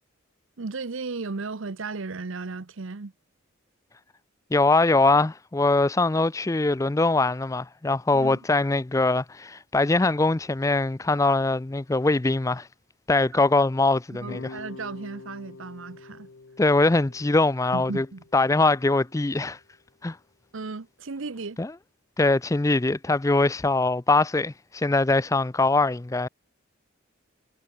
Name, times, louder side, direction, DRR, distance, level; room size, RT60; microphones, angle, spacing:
voice 1, 0.6-3.1 8.1-8.4 13.3-13.4 14.1-16.3 17.7-18.2 20.5-21.6, right 3 dB, 70° right, 0.8 m, -35 dB
voice 2, 4.5-12.7 13.1-14.5 16.6-18.1 18.3-19.6 20.0-20.2 21.6-21.7 22.2-26.3, left 2 dB, 15° left, 0.4 m, -22 dB
sound 1, 14.2-19.4, left 3 dB, 60° left, 0.7 m, -46 dB
head